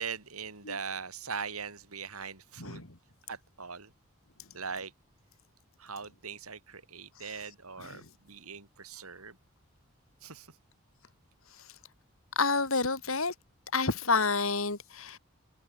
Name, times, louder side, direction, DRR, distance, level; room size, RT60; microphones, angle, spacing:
voice 1, 0.0-2.9 3.3-3.9 4.5-4.9 5.8-9.4 10.2-10.5, right 6 dB, 85° right, 4.1 m, -40 dB
voice 2, 2.6-3.0 7.8-8.1 11.6-11.7 12.4-13.3 13.7-15.2, left 4 dB, 70° left, 3.7 m, -29 dB
head